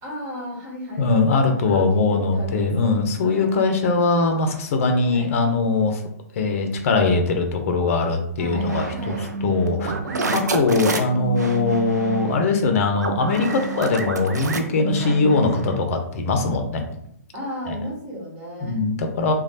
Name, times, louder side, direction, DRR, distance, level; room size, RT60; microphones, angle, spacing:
voice 1, 0.0-3.5 5.1-5.3 8.4-9.3 10.0-10.4 14.9-15.2 17.3-18.9, equal, 30° right, -5 dB, 1.5 m, -34 dB
voice 2, 1.0-6.0 6.3-9.1 9.4-9.9 10.3-16.8 17.7-17.8 18.6-19.3, left 3 dB, 50° left, 5 dB, 0.6 m, -21 dB
sound 1, 8.5-15.8, right 3 dB, 85° right, 0.4 m, -28 dB
3.1 x 2.3 x 2.7 m, 0.69 s
hypercardioid pair, 130°, 9 cm